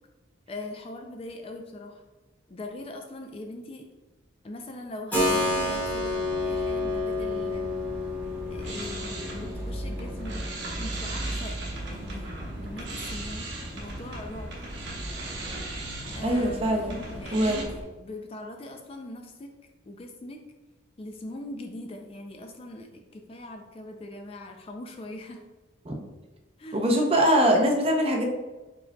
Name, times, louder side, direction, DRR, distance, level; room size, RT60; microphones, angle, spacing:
voice 1, 0.5-2.0 2.5-3.9 4.4-7.8 8.5-10.5 10.8-11.6 11.9-12.3 12.6-13.5 13.7-14.6 16.1-16.8 17.1-17.6 18.0-19.5 19.9-20.4 21.0-25.4 26.6-26.9, left 1 dB, 30° left, 3 dB, 0.3 m, -41 dB
Keyboard (musical), 5.1-13.7, left 2 dB, 10° left, 1.3 m, -31 dB
sound 1, 5.3-17.8, right 1 dB, 10° right, 0.9 m, -38 dB
sound 2, 8.2-17.6, right 2 dB, 60° right, 0.9 m, -40 dB
voice 2, 16.2-17.0 17.3-17.6 25.8-26.0 26.7-28.2, equal, 30° right, 2 dB, 0.5 m, -22 dB
4.7 x 3.9 x 2.2 m, 1.2 s
head